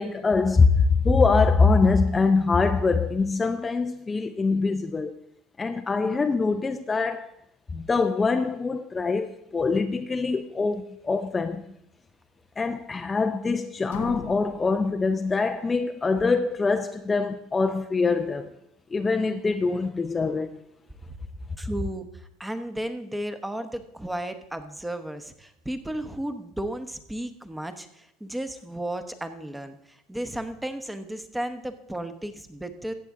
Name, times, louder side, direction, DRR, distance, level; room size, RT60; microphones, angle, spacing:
voice 1, 0.0-5.1 5.6-7.3 7.7-11.7 12.6-18.5 18.9-20.6, left 4 dB, 20° left, 0.5 m, -23 dB
sound 1, 13.9-15.8, left 8 dB, 80° left, 0.8 m, -42 dB
voice 2, 21.6-32.9, right 1 dB, 10° right, 1.0 m, -34 dB
14.0 x 8.1 x 3.7 m
hypercardioid pair, 85°, 0 cm